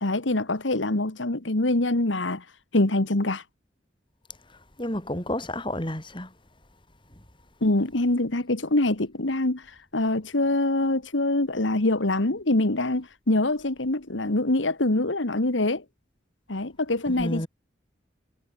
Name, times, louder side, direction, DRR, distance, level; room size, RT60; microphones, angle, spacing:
voice 1, 0.0-2.4 2.7-3.4 7.6-15.8 16.5-17.5, left 2 dB, 85° left, 1.9 m, -24 dB
voice 2, 4.8-6.3 17.2-17.5, left 1 dB, 25° left, 3.9 m, -30 dB
head